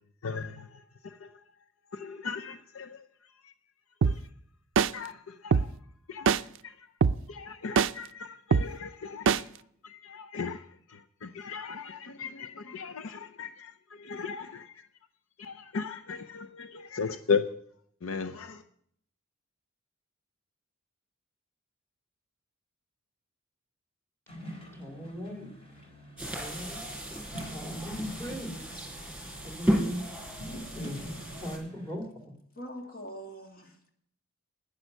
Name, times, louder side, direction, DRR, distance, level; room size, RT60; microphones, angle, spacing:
voice 1, 0.2-0.7 1.2-1.3 1.9-3.0 4.0-4.1 4.9-5.7 6.1-6.4 7.3-9.4 9.8-10.6 10.9-13.7 14.0-14.7 15.4-17.4 18.0-18.6, left 5 dB, 75° left, 0.6 m, -36 dB
sound 1, 4.0-4.1 4.8-4.9 5.5-5.6 6.3-6.4 7.0-7.1 7.8-7.9 8.5-8.6 9.3-9.4, right 6 dB, 65° right, 0.4 m, -21 dB
sound 2, 24.3-32.0, equal, 30° left, 3.7 m, -46 dB
voice 2, 24.7-25.5 26.2-26.8 27.5-28.6 29.4-30.1 30.8-32.4, equal, 10° left, 2.3 m, -39 dB
sound 3, 26.2-31.6, equal, 5° right, 5.5 m, -34 dB
voice 3, 32.6-33.9, equal, 45° left, 2.1 m, -43 dB
10.5 x 10.0 x 6.5 m
head